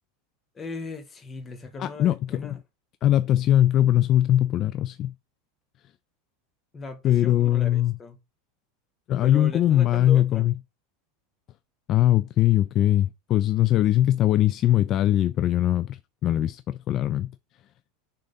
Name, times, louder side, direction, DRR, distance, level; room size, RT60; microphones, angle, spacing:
voice 1, 0.5-2.6 6.7-8.2 9.2-10.4, left 3 dB, 20° left, 1.4 m, -38 dB
voice 2, 1.8-2.6 3.0-5.1 7.0-7.9 9.1-10.5 11.9-17.3, left 12 dB, 40° left, 0.3 m, -21 dB
6.4 x 3.8 x 4.0 m
supercardioid pair, 120°, 0 cm